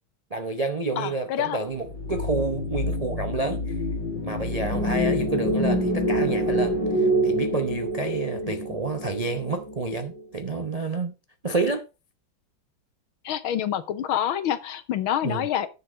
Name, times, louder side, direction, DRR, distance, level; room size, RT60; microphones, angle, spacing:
voice 1, 0.3-3.8 4.2-11.1 11.4-11.8 15.2-15.5, right 3 dB, 80° right, 0.3 m, -29 dB
voice 2, 1.0-1.6 8.4-8.5 13.3-15.7, left 10 dB, 85° left, 1.8 m, -27 dB
sound 1, 1.9-10.2, equal, 55° left, 3.3 m, -26 dB
10.0 x 7.0 x 5.0 m
omnidirectional pair, 2.2 m